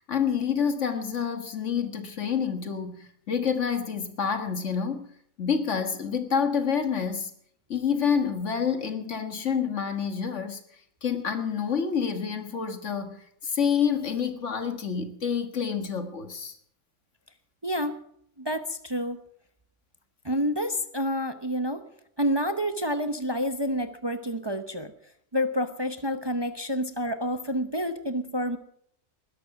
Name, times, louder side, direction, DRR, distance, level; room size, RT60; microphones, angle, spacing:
voice 1, 0.0-5.1 5.4-7.3 7.7-10.6 11.0-16.5, left 7 dB, 60° left, 1.8 m, -28 dB
voice 2, 17.6-18.0 18.4-19.2 20.2-21.8 22.2-24.9 25.3-28.6, equal, 20° right, 0.8 m, -28 dB
20.0 x 11.5 x 5.9 m
omnidirectional pair, 1.4 m